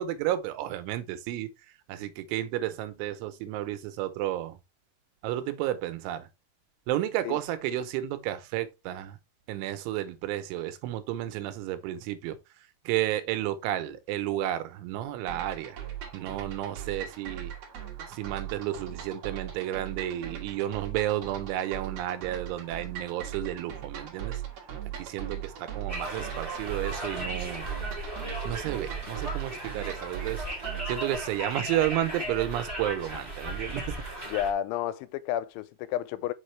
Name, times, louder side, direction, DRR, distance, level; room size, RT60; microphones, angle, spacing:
voice 1, 0.0-1.5 1.9-4.6 5.2-6.3 6.9-9.2 9.5-12.4 12.9-15.8 16.1-17.5 18.1-24.4 25.0-27.7 28.4-30.4 30.9-34.1, right 13 dB, 90° right, 3.2 m, -32 dB
sound 1, 15.3-31.1, right 10 dB, 65° right, 1.5 m, -39 dB
Conversation, 25.9-34.5, right 1 dB, 15° right, 2.1 m, -36 dB
voice 2, 34.3-36.3, left 11 dB, 90° left, 3.0 m, -31 dB
6.3 x 5.7 x 3.2 m
omnidirectional pair, 5.3 m